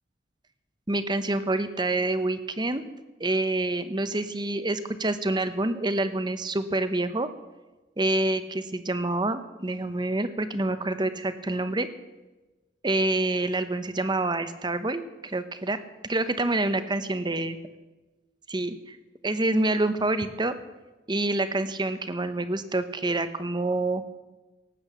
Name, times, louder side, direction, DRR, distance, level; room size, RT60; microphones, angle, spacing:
voice 1, 0.9-2.8 3.2-7.3 8.0-11.9 12.8-15.8 16.0-17.6 18.5-19.0 19.2-20.6 21.1-24.0, right 2 dB, 25° right, 11 dB, 0.9 m, -27 dB
18.0 x 8.7 x 7.4 m, 1.1 s
head